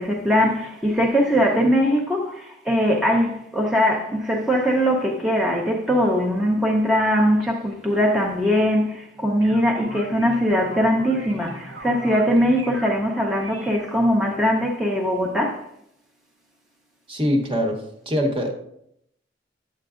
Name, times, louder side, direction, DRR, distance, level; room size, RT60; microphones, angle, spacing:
voice 1, 0.0-15.6, equal, 5° right, -2 dB, 0.7 m, -21 dB
sound 1, 9.1-14.4, right 1 dB, 85° right, 0.9 m, -40 dB
voice 2, 17.1-17.8 18.1-18.5, equal, 30° right, 3 dB, 1.0 m, -22 dB
10.5 x 7.7 x 2.5 m, 0.75 s
head